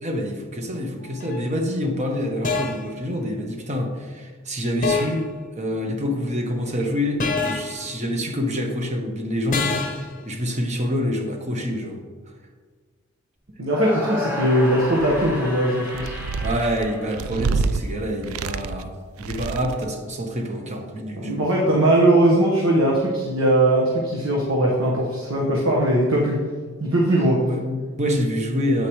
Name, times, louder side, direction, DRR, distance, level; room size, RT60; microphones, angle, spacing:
voice 1, 0.0-5.3 5.5-12.0 16.4-21.4 27.4-28.9, equal, 35° right, 3 dB, 1.1 m, -26 dB
sound 1, 1.2-1.4 2.4-2.9 4.8-5.3 7.2-7.8 9.5-10.1, left 4 dB, 40° left, 0.7 m, -25 dB
voice 2, 13.6-16.1 21.1-26.4 26.8-27.4, right 1 dB, 70° right, -3 dB, 1.4 m, -20 dB
sound 2, 13.7-17.8, left 1 dB, 10° right, 1.6 m, -32 dB
sound 3, 14.8-15.5 15.9-17.8 18.2-18.9 19.2-19.9, right 4 dB, 85° right, 0.4 m, -28 dB
9.5 x 8.6 x 3.2 m, 1.5 s
head